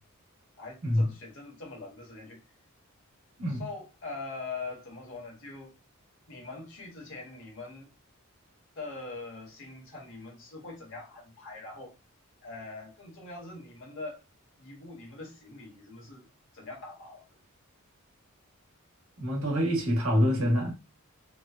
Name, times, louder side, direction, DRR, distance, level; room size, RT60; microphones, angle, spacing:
voice 1, 0.6-2.4 3.5-5.7 6.3-7.9 8.7-11.9 12.4-14.2 14.6-16.2 16.5-17.4, left 3 dB, 60° left, 1.2 m, -42 dB
voice 2, 19.2-20.7, equal, 70° right, 1.1 m, -26 dB
3.0 x 2.1 x 2.4 m
head